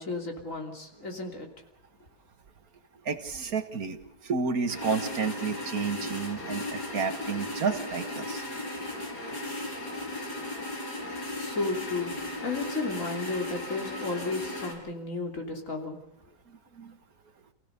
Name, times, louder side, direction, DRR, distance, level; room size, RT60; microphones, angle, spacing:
voice 1, 0.0-1.5 11.4-12.1 12.4-16.0, left 3 dB, 45° left, 3 dB, 3.5 m, -33 dB
voice 2, 3.1-8.4 16.5-17.0, right 5 dB, 60° right, 8 dB, 2.0 m, -31 dB
sound 1, 4.7-14.7, left 1 dB, 65° left, 5.7 m, -36 dB
28.5 x 16.5 x 6.8 m, 0.85 s
omnidirectional pair, 1.8 m